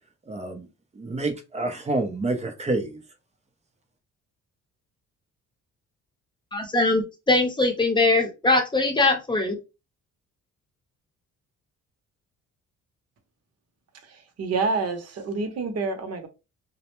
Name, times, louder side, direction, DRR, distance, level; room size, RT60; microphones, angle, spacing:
voice 1, 0.3-0.7 1.0-3.0, right 2 dB, 20° right, 0.6 m, -28 dB
voice 2, 6.5-9.6, left 2 dB, 15° left, 0.8 m, -22 dB
voice 3, 14.4-16.3, right 4 dB, 55° right, 0.8 m, -27 dB
2.1 x 2.1 x 2.9 m
cardioid pair, 90°, 30 cm